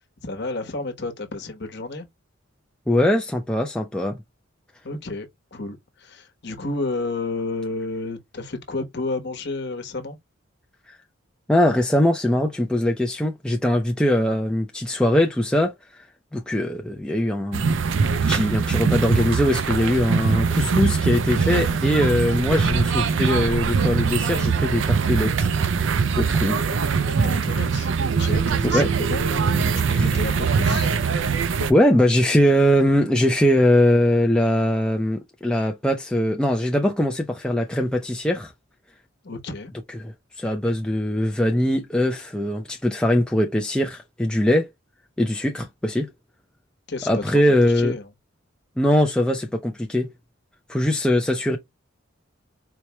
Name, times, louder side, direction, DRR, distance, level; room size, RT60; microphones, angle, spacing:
voice 1, 0.2-2.1 4.8-10.2 27.1-30.9 39.2-39.7 46.9-47.4 47.7-48.1, left 3 dB, 55° left, 1.1 m, -31 dB
voice 2, 2.9-4.2 11.5-15.7 16.3-17.8 18.3-25.5 26.2-26.6 28.6-28.9 29.9-30.2 31.7-38.5 40.0-44.7 45.2-46.1 47.1-47.9 48.8-50.1 50.7-51.6, left 1 dB, 5° left, 0.5 m, -21 dB
sound 1, 17.5-31.7, right 5 dB, 65° right, 0.5 m, -22 dB
4.5 x 2.2 x 3.0 m
head